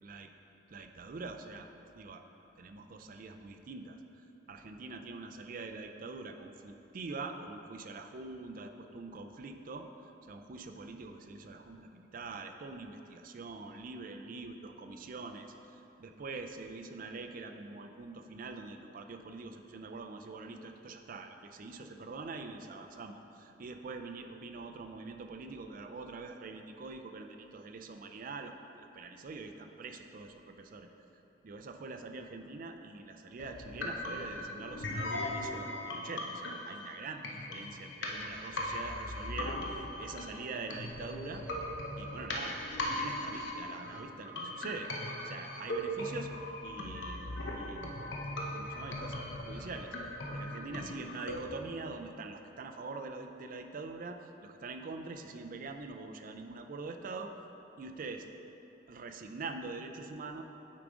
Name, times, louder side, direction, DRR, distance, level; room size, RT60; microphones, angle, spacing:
voice 1, 0.7-1.7 1.9-2.2 2.6-9.9 10.3-30.9 31.4-39.6 40.0-41.4 42.0-44.9 45.2-46.3 46.6-48.1 48.5-49.9 50.3-57.3 57.8-58.2 58.9-60.4, right 3 dB, 50° right, 6 dB, 0.4 m, -44 dB
sound 1, 33.4-51.4, left 1 dB, 70° left, 0.8 m, -39 dB
8.4 x 4.8 x 3.7 m, 3.0 s
head